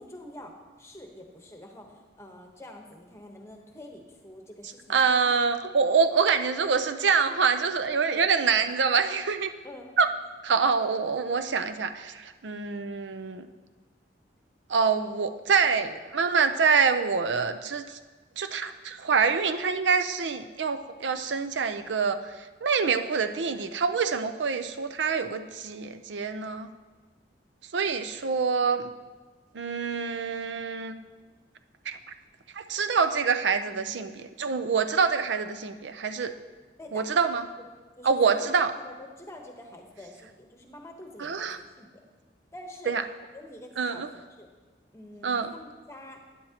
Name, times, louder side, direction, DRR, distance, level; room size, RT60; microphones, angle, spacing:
voice 1, 0.0-5.2 8.2-8.3 9.6-9.9 36.8-37.1 37.6-37.7 38.0-42.0 42.5-42.9 43.3-44.5 44.9-46.2, left 1 dB, 15° left, 2 dB, 1.0 m, -46 dB
voice 2, 4.9-9.5 10.0-10.1 10.4-13.5 14.7-18.0 18.4-22.2 22.6-26.7 27.7-28.9 29.5-30.9 31.9-32.0 32.6-36.3 36.9-37.4 38.0-38.7 41.2-41.6 42.9-43.0 43.8-44.1 45.2-45.5, right 5 dB, 90° right, 9 dB, 0.6 m, -26 dB
11.5 x 10.0 x 2.9 m, 1.3 s
head